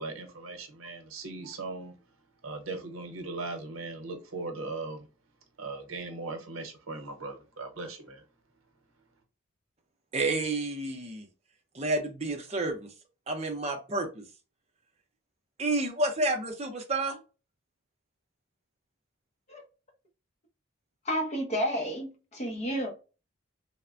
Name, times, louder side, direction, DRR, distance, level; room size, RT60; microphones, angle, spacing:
voice 1, 0.0-1.9 2.4-5.1 5.6-8.2, right 3 dB, 85° right, 0.8 m, -38 dB
voice 2, 10.1-11.3 11.7-12.9 13.3-14.3 15.6-17.2, right 2 dB, 30° right, 0.6 m, -30 dB
voice 3, 21.1-22.9, equal, 30° left, 0.7 m, -31 dB
3.2 x 2.1 x 2.4 m
head